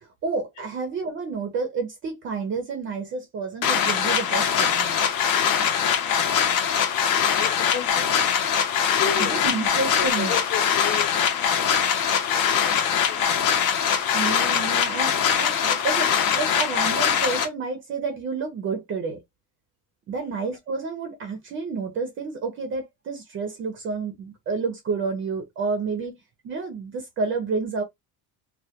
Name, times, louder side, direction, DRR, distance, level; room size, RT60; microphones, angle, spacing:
voice 1, 0.0-5.0 9.2-10.4 14.1-19.2 20.1-26.2 26.4-27.8, right 4 dB, 30° right, 0.4 m, -30 dB
sound 1, 3.6-17.5, left 8 dB, 80° left, 0.8 m, -22 dB
voice 2, 7.4-8.3 9.0-9.4 10.0-11.8 12.3-13.3, left 7 dB, 45° left, 0.7 m, -34 dB
2.2 x 2.1 x 2.7 m
cardioid pair, 165°, 42 cm